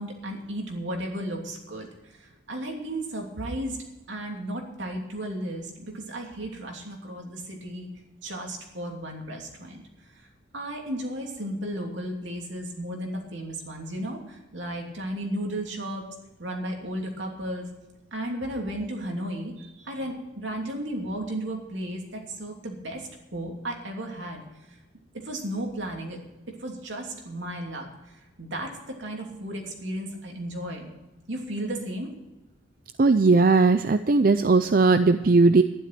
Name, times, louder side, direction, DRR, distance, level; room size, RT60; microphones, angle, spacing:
voice 1, 0.0-3.8 4.1-7.9 8.2-10.1 10.5-16.1 16.4-17.7 18.1-24.4 25.1-26.2 26.5-27.9 28.4-30.9 31.3-32.1, right 1 dB, 75° right, 1 dB, 3.0 m, -34 dB
voice 2, 33.0-35.6, right 3 dB, 45° right, 10 dB, 0.5 m, -18 dB
12.0 x 11.0 x 6.0 m, 1.0 s
head